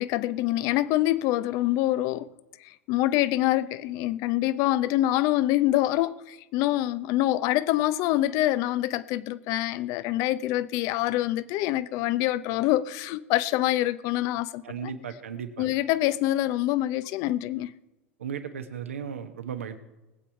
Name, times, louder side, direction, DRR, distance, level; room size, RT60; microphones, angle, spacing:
voice 1, 0.0-2.3 2.6-14.9 15.6-17.7, left 15 dB, 55° left, 0.7 m, -25 dB
voice 2, 14.6-15.7 18.2-19.8, right 7 dB, 80° right, 1.3 m, -35 dB
20.0 x 8.5 x 4.6 m
hypercardioid pair, 80°, 7 cm